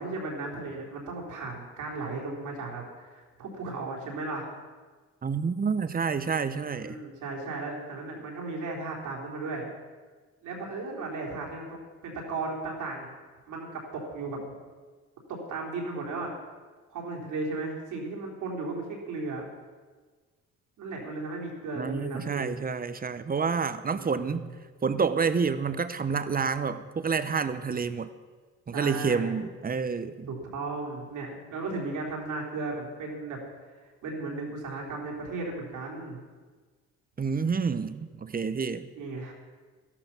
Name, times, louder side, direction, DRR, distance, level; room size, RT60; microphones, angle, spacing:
voice 1, 0.0-4.5 6.8-9.7 10.4-13.1 13.5-14.4 15.3-16.3 16.9-19.4 20.8-22.6 23.9-24.5 28.7-29.4 30.3-33.4 34.0-36.2 38.9-39.3, right 3 dB, 85° right, 3.7 m, -35 dB
voice 2, 5.2-7.0 21.8-24.4 24.8-28.1 28.7-30.3 37.2-38.9, right 5 dB, 30° right, 0.8 m, -28 dB
13.0 x 12.0 x 6.1 m
cardioid pair, 90°, 30 cm